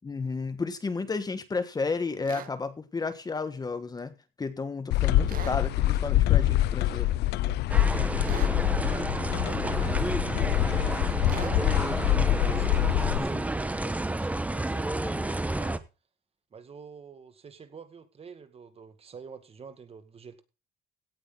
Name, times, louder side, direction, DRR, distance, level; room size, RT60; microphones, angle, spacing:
voice 1, 0.0-7.1 12.1-12.4 13.2-13.5 15.0-15.2, left 4 dB, 25° left, 1.5 m, -33 dB
sound 1, 2.2-2.5 5.3-5.6 8.2-8.6 11.3-11.6, right 11 dB, 55° right, 0.9 m, -41 dB
sound 2, 4.9-13.2, left 14 dB, 80° left, 0.7 m, -25 dB
sound 3, 7.7-15.8, right 2 dB, 10° right, 1.1 m, -30 dB
voice 2, 8.9-10.1 10.7-11.7 12.2-15.8 16.5-20.4, right 6 dB, 35° right, 2.0 m, -46 dB
17.0 x 8.8 x 4.0 m
cardioid pair, 110°, 17 cm